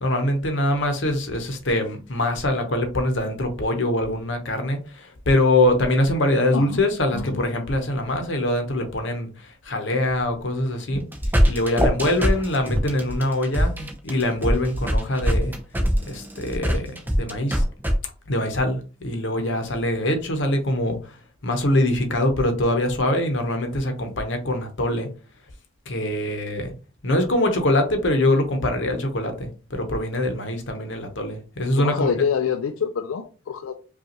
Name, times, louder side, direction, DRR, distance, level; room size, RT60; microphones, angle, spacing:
voice 1, 0.0-11.0 11.4-15.6 16.1-16.9 17.2-17.6 18.3-21.2 21.4-25.1 25.9-26.7 27.0-32.1, left 1 dB, 60° left, 0.8 m, -23 dB
voice 2, 6.5-6.8 7.1-7.4 31.8-33.7, left 6 dB, 80° left, 0.4 m, -26 dB
sound 1, 10.9-17.9, equal, 10° right, 0.6 m, -22 dB
5.2 x 2.4 x 2.9 m
head